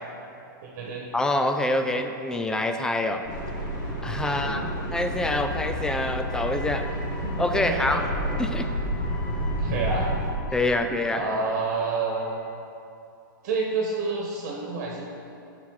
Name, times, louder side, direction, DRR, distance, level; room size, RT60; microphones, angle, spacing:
voice 1, 0.6-1.1 4.2-4.7 7.2-8.0 9.6-10.1 11.1-12.3 13.4-15.1, right 4 dB, 50° right, -2 dB, 1.4 m, -29 dB
voice 2, 1.1-3.2 4.0-6.9 7.4-8.0 8.4-8.7 10.5-11.2, left 2 dB, 5° left, 6 dB, 0.4 m, -26 dB
sound 1, 3.2-10.3, equal, 40° left, 1.9 m, -30 dB
Wind instrument woodwind instrument, 6.3-12.7, left 3 dB, 70° left, 1.5 m, -46 dB
10.5 x 6.0 x 4.8 m, 2.6 s
hypercardioid pair, 140°, 11 cm